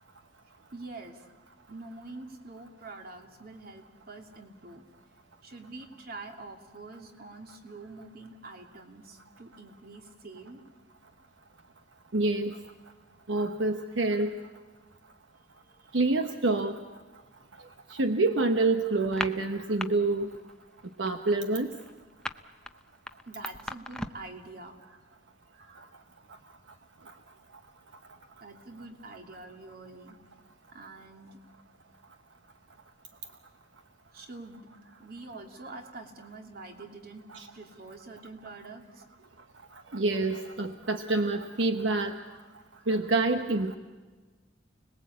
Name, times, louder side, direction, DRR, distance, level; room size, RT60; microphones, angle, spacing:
voice 1, 0.7-1.2 1.7-4.8 5.4-10.6 15.7-15.9 17.3-17.4 17.7-17.8 23.3-24.8 28.4-30.2 30.7-31.4 34.1-34.7 35.0-37.3 37.5-39.4, right 3 dB, 55° right, 4 dB, 2.7 m, -46 dB
voice 2, 12.1-12.6 13.3-14.4 15.9-16.8 17.9-20.3 21.0-21.7 37.3-37.5 39.9-42.2 42.9-43.8, right 2 dB, 80° right, 7 dB, 1.1 m, -27 dB
sound 1, 19.0-19.9 20.2-20.5 20.8-24.3, left 1 dB, 5° left, 0.7 m, -37 dB
29.5 x 20.0 x 8.5 m, 1.4 s
head